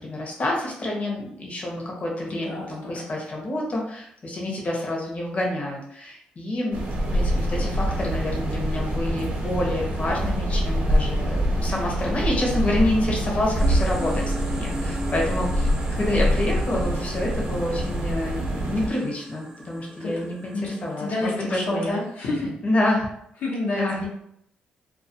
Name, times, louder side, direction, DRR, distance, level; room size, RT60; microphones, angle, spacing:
voice 1, 0.0-6.8 7.1-22.0 22.6-23.1 23.7-24.1, left 1 dB, 45° left, -1 dB, 0.8 m, -28 dB
voice 2, 2.3-3.2 20.0-20.1 20.5-22.5 23.4-24.1, left 2 dB, 80° left, -5 dB, 0.7 m, -29 dB
sound 1, 6.7-18.9, equal, 65° right, 0.7 m, -25 dB
sound 2, 13.6-22.3, right 1 dB, 20° right, 0.4 m, -39 dB
2.3 x 2.3 x 2.7 m, 0.71 s
cardioid pair, 75°, 3 cm